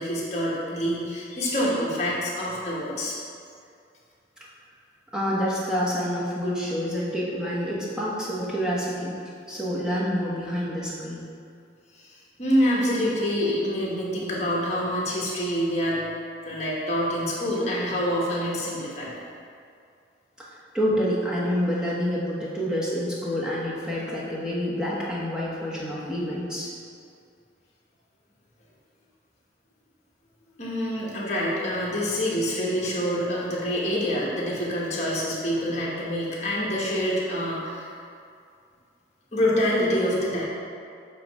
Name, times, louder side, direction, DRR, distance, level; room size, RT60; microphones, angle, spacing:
voice 1, 0.0-3.1 12.0-12.1 12.4-16.0 16.4-19.1 30.6-37.9 39.3-40.4, equal, 35° left, -5 dB, 1.3 m, -26 dB
voice 2, 5.1-9.2 9.5-11.2 20.4-20.5 20.7-26.7, equal, 5° right, -7 dB, 1.0 m, -27 dB
7.6 x 3.0 x 4.8 m, 2.4 s
head